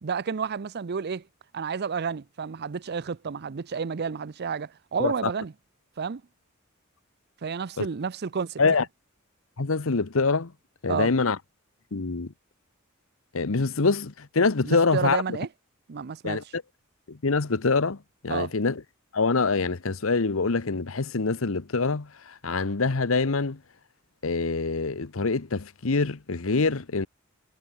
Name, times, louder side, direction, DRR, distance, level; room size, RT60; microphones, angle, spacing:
voice 1, 0.0-1.3 1.5-5.5 6.0-6.2 7.4-8.8 10.9-11.1 14.6-15.5 15.9-16.5 18.3-18.5, right 6 dB, 50° right, 0.5 m, -31 dB
voice 2, 9.6-10.5 10.8-11.4 11.9-12.3 13.3-15.2 16.2-16.4 17.1-18.0 18.2-18.7 19.1-23.6 24.2-27.1, left 4 dB, 75° left, 1.0 m, -25 dB
head